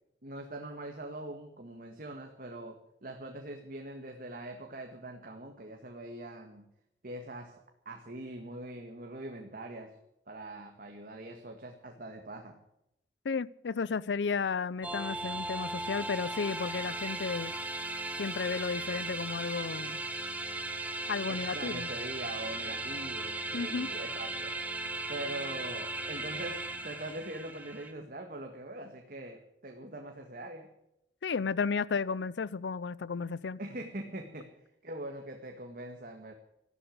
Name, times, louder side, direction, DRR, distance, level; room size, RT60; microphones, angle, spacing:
voice 1, 0.2-6.7 7.0-7.6 7.9-10.0 10.3-12.6 21.3-24.6 25.1-30.7 33.6-34.5 34.8-36.3, right 1 dB, 55° right, 1.8 m, -42 dB
voice 2, 13.2-17.5 18.2-20.0 21.1-21.9 23.5-23.9 31.2-33.6, left 5 dB, 80° left, 0.5 m, -33 dB
sound 1, 14.8-27.9, right 2 dB, 10° right, 1.5 m, -37 dB
14.5 x 12.5 x 7.8 m
head